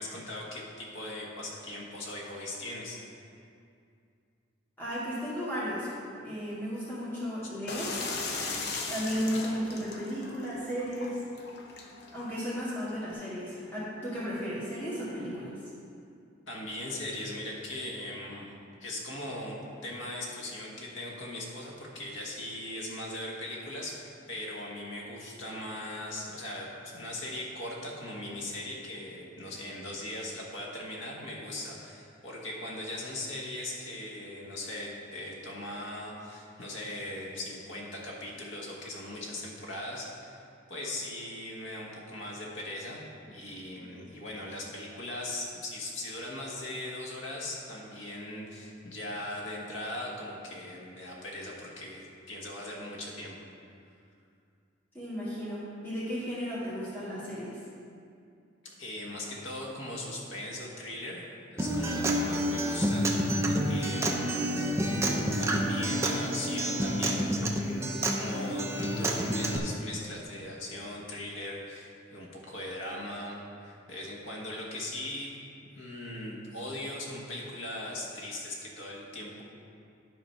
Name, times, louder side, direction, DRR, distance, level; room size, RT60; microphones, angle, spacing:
voice 1, 0.0-3.0 16.5-18.5 18.8-24.0 24.3-40.4 40.7-43.0 43.3-53.4 58.8-64.8 65.1-75.3 75.7-79.4, left 1 dB, 80° left, -2 dB, 1.6 m, -39 dB
voice 2, 4.8-5.9 6.2-8.0 8.9-11.2 12.1-15.5 54.9-57.6, equal, 10° left, -12 dB, 2.3 m, -34 dB
sound 1, 7.7-13.1, left 3 dB, 55° left, 0.8 m, -38 dB
Acoustic guitar, 61.6-69.6, right 1 dB, 15° right, 0.6 m, -29 dB
11.0 x 4.0 x 5.7 m, 2.4 s
head